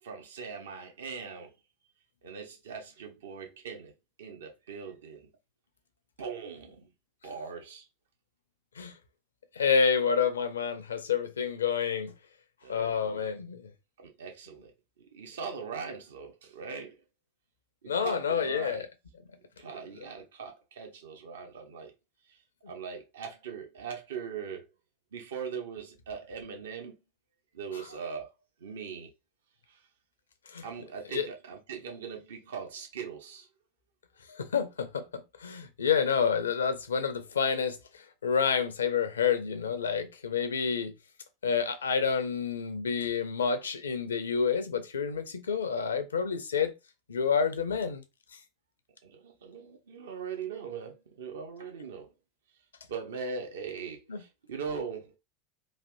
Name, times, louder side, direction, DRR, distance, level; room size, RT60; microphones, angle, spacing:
voice 1, 0.0-1.5 2.2-3.9 4.2-5.3 6.2-6.9 7.2-7.9 12.6-13.3 14.0-14.7 15.1-17.0 17.8-18.8 19.6-21.9 22.3-22.4 22.7-24.7 25.1-27.0 27.5-28.3 28.6-29.1 29.7-29.8 30.6-33.5 49.0-52.1 52.9-55.2, right 6 dB, 65° right, 0.8 m, -40 dB
voice 2, 9.6-12.1 12.7-13.7 17.9-18.9 30.5-30.6 31.1-31.3 34.3-40.9 41.4-46.7 47.1-48.0 54.1-54.2, left 6 dB, 70° left, 0.5 m, -29 dB
3.3 x 2.5 x 2.5 m
figure-of-eight pair, 80°, 0 cm